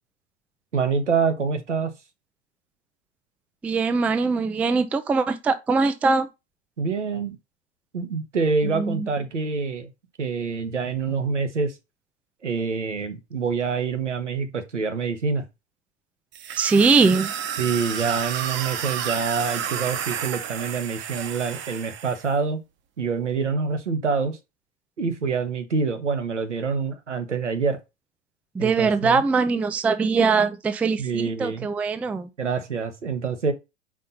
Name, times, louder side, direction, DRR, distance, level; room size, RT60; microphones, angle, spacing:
voice 1, 0.7-1.9 6.8-7.4 7.9-9.9 10.2-11.7 12.4-15.4 17.6-22.6 23.0-24.4 25.0-27.8 28.6-29.2 31.0-31.7 32.4-33.5, right 5 dB, 90° right, 1.5 m, -26 dB
voice 2, 3.6-6.3 8.7-9.1 16.6-17.3 28.5-32.3, right 4 dB, 5° right, 0.3 m, -21 dB
sound 1, 16.3-22.3, right 9 dB, 35° right, 1.0 m, -31 dB
5.1 x 4.3 x 5.4 m
hypercardioid pair, 100°, 35 cm